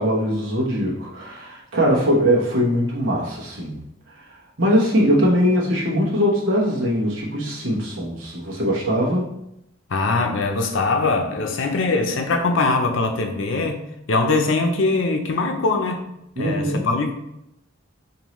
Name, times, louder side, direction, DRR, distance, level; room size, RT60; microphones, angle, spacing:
voice 1, 0.0-3.8 4.6-9.3 16.4-16.9, equal, 75° right, -5 dB, 1.1 m, -21 dB
voice 2, 9.9-16.1 16.4-17.1, left 3 dB, 75° left, 4 dB, 0.6 m, -22 dB
5.3 x 2.7 x 3.1 m, 0.83 s
head